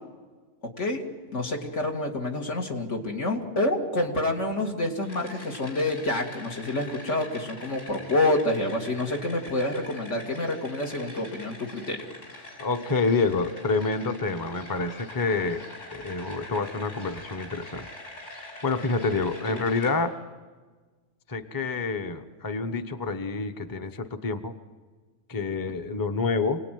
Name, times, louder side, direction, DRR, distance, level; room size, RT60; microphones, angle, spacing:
voice 1, 1.3-12.1 19.5-19.6, left 1 dB, 70° left, 1 dB, 2.8 m, -28 dB
sound 1, 5.0-19.9, left 1 dB, 90° left, 7.1 m, -44 dB
voice 2, 12.6-15.6 15.9-17.9 18.6-20.2 21.3-24.5 25.3-26.6, left 3 dB, 20° left, 8 dB, 0.8 m, -28 dB
27.5 x 19.0 x 9.3 m, 1.4 s
omnidirectional pair, 1.3 m